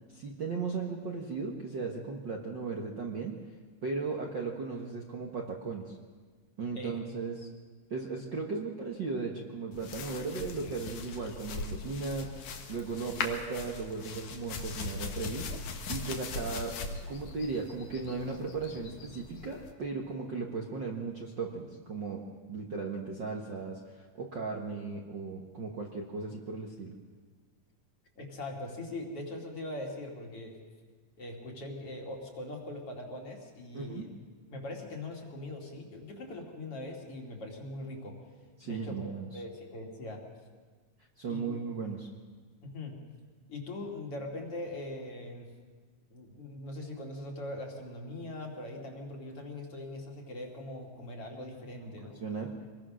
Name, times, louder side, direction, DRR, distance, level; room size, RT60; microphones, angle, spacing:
voice 1, 0.1-3.4 3.8-6.0 6.6-7.5 7.9-15.5 15.9-27.0 33.7-34.0 38.6-39.4 41.2-42.1 51.7-51.9 52.2-52.5, right 4 dB, 45° right, 0 dB, 1.6 m, -36 dB
sound 1, 9.7-19.7, left 4 dB, 65° left, 2.9 m, -40 dB
voice 2, 28.2-30.6 31.2-34.1 34.5-38.2 38.6-40.2 41.3-41.6 42.6-43.0 43.5-45.6 46.1-52.2, left 1 dB, 45° left, 0 dB, 3.5 m, -41 dB
25.0 x 21.0 x 6.3 m, 1.4 s
omnidirectional pair, 3.8 m